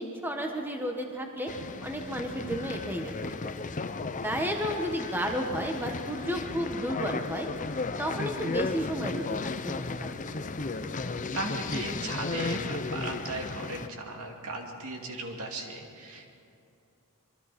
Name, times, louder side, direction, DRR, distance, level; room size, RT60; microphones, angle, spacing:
voice 1, 0.0-1.5 1.8-3.5 4.2-7.5 8.0-10.1, equal, 10° right, 2 dB, 1.4 m, -32 dB
sound 1, 1.5-13.9, left 3 dB, 35° left, 0.7 m, -35 dB
voice 2, 11.3-16.3, right 2 dB, 70° right, 2 dB, 2.5 m, -37 dB
25.5 x 23.5 x 4.3 m, 2.6 s
head